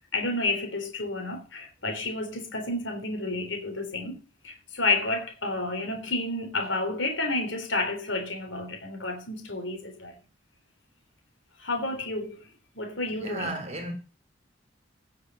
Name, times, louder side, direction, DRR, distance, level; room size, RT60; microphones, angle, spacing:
voice 1, 0.1-10.2 11.6-12.5 12.8-13.6, left 2 dB, 75° left, 3.6 m, -30 dB
voice 2, 13.2-13.9, right 2 dB, 35° right, 3.0 m, -34 dB
17.0 x 6.5 x 5.5 m
head